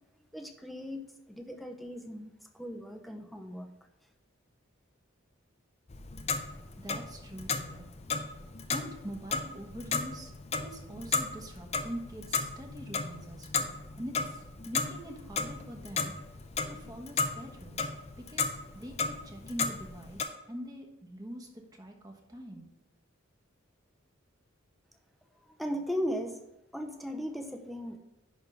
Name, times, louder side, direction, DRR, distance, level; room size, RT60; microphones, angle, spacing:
voice 1, 0.3-1.0 1.3-3.7 25.6-26.4 26.7-28.0, equal, ahead, 4 dB, 0.7 m, -37 dB
Clock, 5.9-20.3, left 4 dB, 30° left, 0.6 m, -35 dB
voice 2, 6.8-7.8 8.7-10.3 10.6-16.1 16.7-22.7, equal, 20° right, 2 dB, 1.1 m, -44 dB
10.5 x 3.6 x 5.3 m, 0.93 s
head